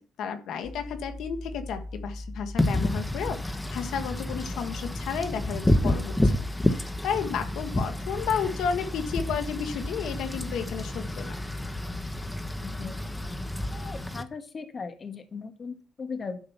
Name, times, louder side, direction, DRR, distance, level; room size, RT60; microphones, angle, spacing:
voice 1, 0.0-6.3 6.6-11.4, left 7 dB, 80° left, 7 dB, 1.5 m, -32 dB
sound 1, 0.6-14.0, left 1 dB, 60° left, 3.9 m, -39 dB
Wind / Rain, 2.6-14.2, left 1 dB, 10° left, 1.2 m, -30 dB
voice 2, 12.6-13.0 13.7-16.4, left 5 dB, 40° left, 7 dB, 1.6 m, -38 dB
11.5 x 5.3 x 5.7 m, 0.39 s
cardioid pair, 90°, 0 cm